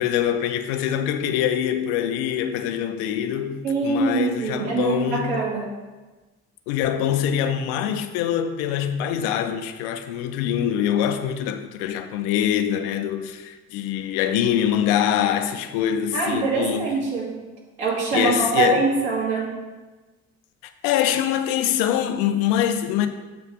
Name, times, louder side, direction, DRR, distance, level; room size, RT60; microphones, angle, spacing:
voice 1, 0.0-5.4 6.7-17.0 18.1-18.9 20.6-23.1, left 10 dB, 60° left, 0.6 m, -24 dB
voice 2, 3.6-5.7 16.1-17.4 17.8-19.5, right 4 dB, 65° right, 2.1 m, -23 dB
7.6 x 3.3 x 5.8 m
figure-of-eight pair, 45°, 42 cm